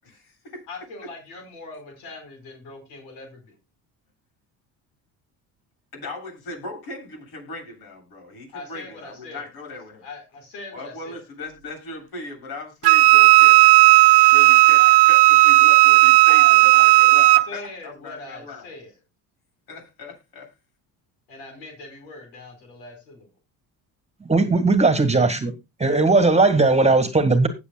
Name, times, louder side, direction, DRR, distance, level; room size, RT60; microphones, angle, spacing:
voice 1, 0.0-0.6 1.0-1.1 5.9-10.1 10.7-13.7 14.2-18.7 19.7-20.5, left 2 dB, 70° left, 7.8 m, -38 dB
voice 2, 0.7-3.5 8.5-9.5 10.0-11.2 14.8-14.9 16.3-16.9 17.5-18.9 21.3-23.3, left 3 dB, 85° left, 4.9 m, -41 dB
Wind instrument woodwind instrument, 12.8-17.5, right 19 dB, 80° right, 0.7 m, -13 dB
voice 3, 24.3-25.5 25.8-27.5, right 3 dB, 15° right, 1.7 m, -18 dB
19.5 x 7.1 x 2.2 m
cardioid pair, 105°, 38 cm